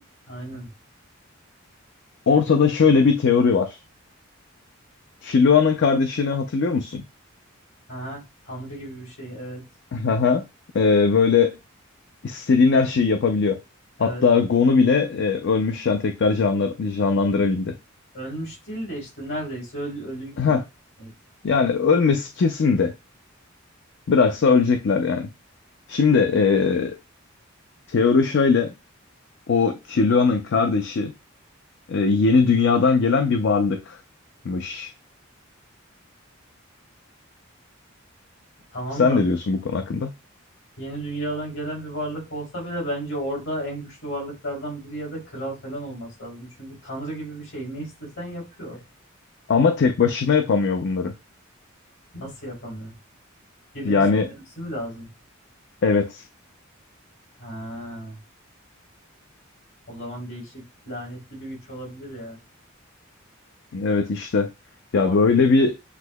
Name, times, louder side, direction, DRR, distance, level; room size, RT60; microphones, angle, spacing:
voice 1, 0.3-0.7 7.9-9.6 14.0-14.2 18.1-20.6 21.0-21.1 38.7-39.2 40.8-48.8 52.1-52.9 53.7-55.1 57.4-58.2 59.9-62.4 64.9-65.2, right 1 dB, 75° left, 3.1 m, -33 dB
voice 2, 2.3-3.8 5.2-7.0 9.9-10.4 10.7-11.5 12.2-13.6 14.0-17.7 20.4-20.6 21.4-22.9 24.1-25.3 25.9-27.0 27.9-28.7 29.5-31.1 31.9-34.0 34.4-34.9 38.9-40.1 49.5-51.1 53.8-54.3 55.8-56.2 63.7-64.5 64.9-65.8, left 5 dB, 60° left, 0.5 m, -20 dB
8.1 x 2.7 x 2.2 m
head